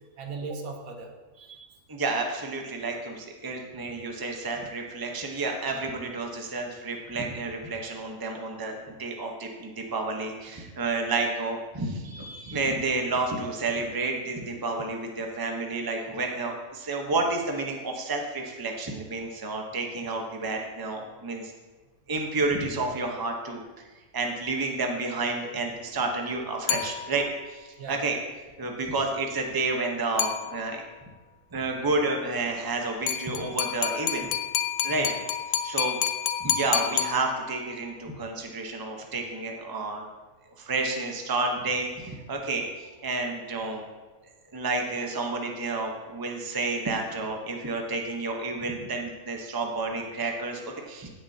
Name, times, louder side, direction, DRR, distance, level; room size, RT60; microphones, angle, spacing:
voice 1, 0.2-1.7 27.8-28.1 34.9-35.2, right 4 dB, 70° right, 4 dB, 1.3 m, -39 dB
voice 2, 1.9-21.5 22.1-23.6 24.1-28.1 28.6-30.8 31.5-34.3 34.8-35.1 35.6-36.0 36.4-40.0 40.6-43.9 44.5-51.1, right 3 dB, 20° right, 2 dB, 0.8 m, -30 dB
sound 1, 26.7-27.5 30.2-30.9 33.1-37.7, left 9 dB, 80° left, 1.0 m, -29 dB
16.0 x 6.4 x 2.8 m, 1.2 s
omnidirectional pair, 1.6 m